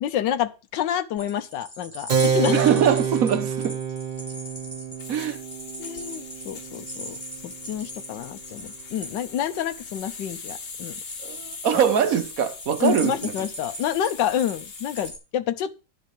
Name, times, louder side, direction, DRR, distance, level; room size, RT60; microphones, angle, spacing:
voice 1, 0.0-2.6 5.8-7.2 7.4-11.0 12.8-15.7, left 10 dB, 85° left, 1.5 m, -28 dB
sound 1, 1.2-15.2, equal, 10° left, 3.9 m, -40 dB
Keyboard (musical), 2.1-8.2, right 6 dB, 35° right, 0.8 m, -28 dB
voice 2, 2.5-3.8 5.1-5.4 11.2-13.3, right 8 dB, 55° right, 1.3 m, -22 dB
sound 2, 2.8-15.2, left 5 dB, 70° left, 2.3 m, -42 dB
10.5 x 5.6 x 7.7 m
omnidirectional pair, 1.9 m